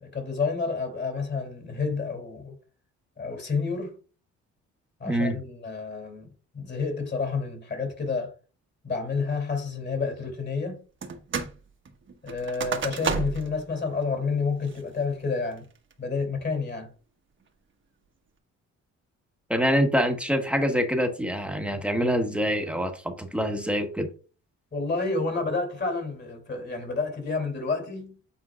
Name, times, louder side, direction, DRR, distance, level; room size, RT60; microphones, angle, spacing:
voice 1, 0.0-2.5 3.2-3.9 5.0-8.3 8.8-10.8 12.2-15.6 16.0-16.9 24.7-28.2, left 4 dB, 35° left, 2.9 m, -29 dB
voice 2, 5.1-5.4 19.5-24.1, equal, 5° right, 1.3 m, -25 dB
sound 1, 11.0-11.6 11.8-13.6 14.0-14.1 14.6-15.0 15.5-15.9, right 5 dB, 40° right, 1.3 m, -31 dB
8.6 x 4.5 x 2.4 m
cardioid pair, 90°, 30 cm